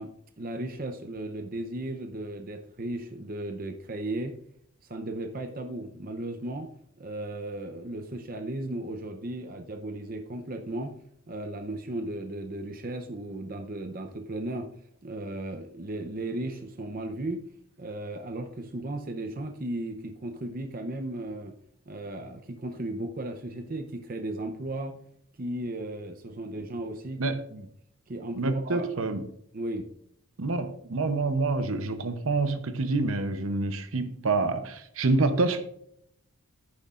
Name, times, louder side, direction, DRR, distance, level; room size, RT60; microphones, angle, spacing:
voice 1, 0.0-4.4 4.9-6.7 7.0-11.0 11.3-14.7 15.0-17.4 17.8-21.5 21.9-25.0 25.4-27.7 28.1-29.1 29.5-29.9, right 1 dB, 40° right, 0.6 m, -35 dB
voice 2, 28.4-29.2 30.4-35.6, right 3 dB, 70° right, 0.7 m, -27 dB
10.5 x 9.7 x 2.5 m
head